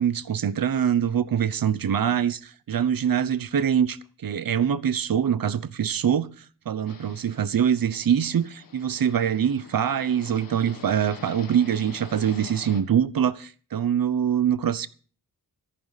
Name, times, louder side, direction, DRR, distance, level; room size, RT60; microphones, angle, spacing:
voice 1, 0.0-6.4 6.7-14.9, right 8 dB, 70° right, 0.9 m, -24 dB
sound 1, 6.9-12.8, left 5 dB, 70° left, 1.8 m, -46 dB
14.0 x 14.0 x 4.1 m
wide cardioid pair, 120°, 35 cm